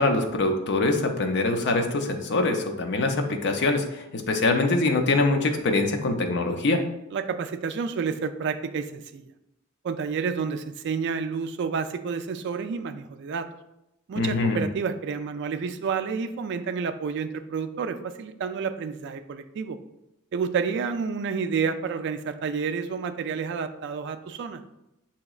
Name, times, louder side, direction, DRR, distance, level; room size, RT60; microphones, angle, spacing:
voice 1, 0.0-6.8 14.2-14.6, left 2 dB, 55° left, 4 dB, 0.5 m, -24 dB
voice 2, 7.1-9.3 9.8-13.5 14.1-19.8 20.3-24.6, right 5 dB, 55° right, 10 dB, 0.3 m, -30 dB
7.0 x 2.9 x 2.3 m, 0.88 s
head